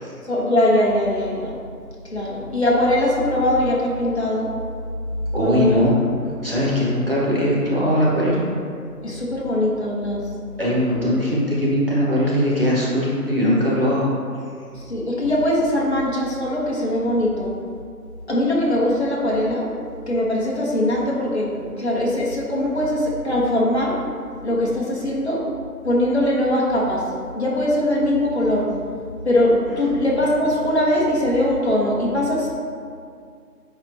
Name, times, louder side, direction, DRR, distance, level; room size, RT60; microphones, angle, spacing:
voice 1, 0.3-1.6 2.1-4.5 5.4-5.8 9.0-10.2 14.9-17.5 18.3-19.7 20.1-24.0 24.4-25.4 25.8-27.0 27.4-28.7 29.2-32.5, left 1 dB, 45° left, -4 dB, 1.3 m, -21 dB
voice 2, 5.3-5.9 6.4-8.5 10.6-14.0, equal, 35° right, -7 dB, 1.2 m, -20 dB
9.4 x 4.3 x 2.8 m, 2.3 s
figure-of-eight pair, 170°, 48 cm